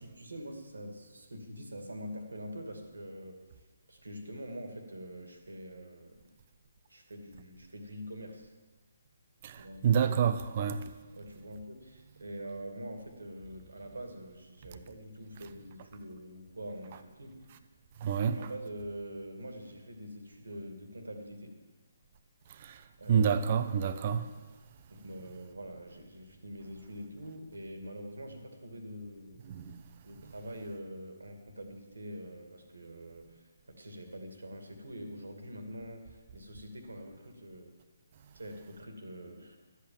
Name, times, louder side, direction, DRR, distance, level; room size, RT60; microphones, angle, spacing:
voice 1, 0.0-6.2 6.9-8.5 9.6-10.0 11.1-17.5 18.3-21.6 23.0-23.4 23.8-24.2 24.9-29.5 30.0-37.7 38.3-39.6, equal, 75° right, 2.3 m, -45 dB
voice 2, 9.4-10.9 18.0-18.4 22.6-22.8 23.1-24.3 29.5-29.8, right 7 dB, 40° right, 0.8 m, -28 dB
13.0 x 8.3 x 7.4 m
figure-of-eight pair, 140°, 0 cm